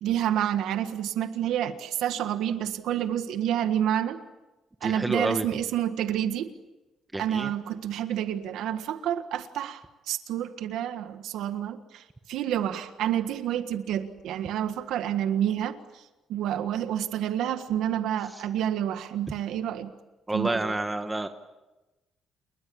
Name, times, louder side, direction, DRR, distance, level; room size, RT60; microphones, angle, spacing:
voice 1, 0.0-4.2 4.8-6.5 7.2-19.9 20.3-20.7, right 10 dB, 85° right, 9 dB, 1.6 m, -29 dB
voice 2, 4.8-5.5 7.1-7.5 20.3-21.3, right 2 dB, 10° right, 7 dB, 1.4 m, -29 dB
29.5 x 21.5 x 8.7 m, 1.1 s
cardioid pair, 120°, 0 cm